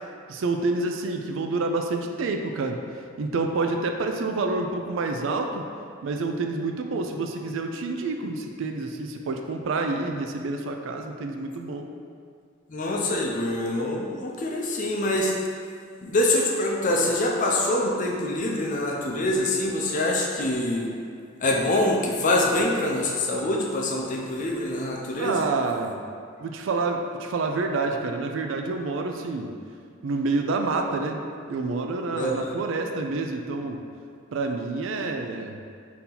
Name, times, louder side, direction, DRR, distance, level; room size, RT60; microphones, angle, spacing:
voice 1, 0.3-2.8 3.2-5.6 6.0-11.9 25.2-26.0 26.4-29.5 30.0-33.8 34.3-35.6, right 3 dB, 70° right, 4 dB, 0.4 m, -28 dB
voice 2, 12.7-15.3 16.0-20.9 21.4-25.5 32.1-32.6, left 1 dB, 40° left, -1 dB, 0.5 m, -25 dB
4.1 x 2.8 x 3.8 m, 2.2 s
head